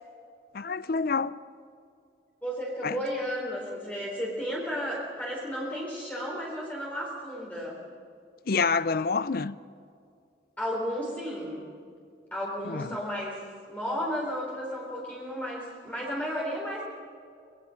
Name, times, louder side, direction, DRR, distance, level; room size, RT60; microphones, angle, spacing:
voice 1, 0.5-1.4 2.8-3.0 8.5-9.6 12.7-12.9, left 4 dB, 50° left, 0.5 m, -27 dB
voice 2, 2.4-7.8 10.6-11.7 12.3-16.8, equal, 10° left, 4.0 m, -33 dB
24.0 x 21.0 x 5.8 m
head